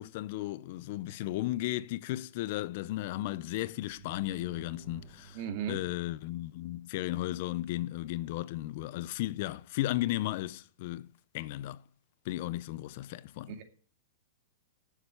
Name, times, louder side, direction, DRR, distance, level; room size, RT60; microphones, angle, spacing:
voice 1, 0.0-5.4 5.7-11.1 11.3-11.8 12.2-13.6, left 16 dB, 55° left, 0.6 m, -35 dB
sound 1, 3.8-7.4, right 6 dB, 20° right, 3.7 m, -55 dB
voice 2, 5.3-5.8 13.5-13.6, right 9 dB, 50° right, 2.3 m, -36 dB
10.0 x 7.3 x 8.1 m
hypercardioid pair, 140°, 0 cm